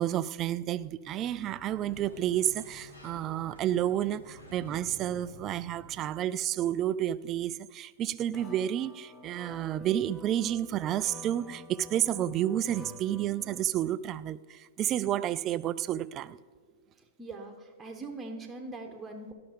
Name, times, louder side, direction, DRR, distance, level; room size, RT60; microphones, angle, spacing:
voice 1, 0.0-16.4, right 11 dB, 35° right, 0.3 m, -30 dB
Sliding door, 0.9-6.2, equal, 85° left, 2.7 m, -51 dB
sound 1, 8.3-13.7, left 1 dB, 15° left, 1.3 m, -48 dB
voice 2, 17.2-19.3, right 2 dB, 15° right, 1.2 m, -41 dB
12.0 x 5.8 x 5.1 m
hypercardioid pair, 110°, 0 cm